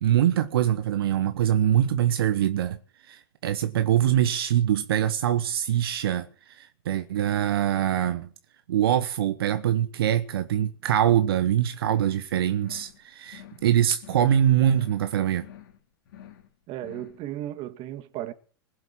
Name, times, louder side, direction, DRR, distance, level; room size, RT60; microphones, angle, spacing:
voice 1, 0.0-8.3 8.7-15.5, right 10 dB, 70° right, 1.0 m, -24 dB
sound 1, 11.9-12.3 12.6-13.0 13.3-13.7 14.0-14.4 14.7-15.1 15.4-15.8 16.1-16.5 16.8-17.2, left 10 dB, 65° left, 3.2 m, -48 dB
voice 2, 16.7-18.3, right 13 dB, 45° right, 1.8 m, -35 dB
20.5 x 7.7 x 7.3 m
hypercardioid pair, 100°, 13 cm